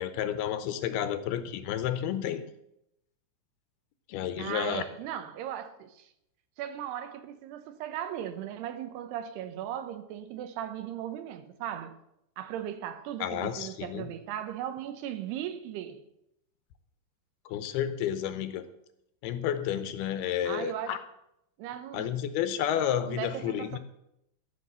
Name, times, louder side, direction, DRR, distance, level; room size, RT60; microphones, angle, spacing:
voice 1, 0.0-2.4 4.1-4.8 13.2-14.1 17.5-18.7 19.2-21.0 21.9-23.8, left 10 dB, 80° left, 2.6 m, -31 dB
voice 2, 4.4-6.1 6.6-12.0 12.4-16.0 20.4-21.0 21.6-22.1 23.1-23.8, right 10 dB, 80° right, 2.9 m, -37 dB
13.5 x 5.9 x 8.1 m
omnidirectional pair, 4.7 m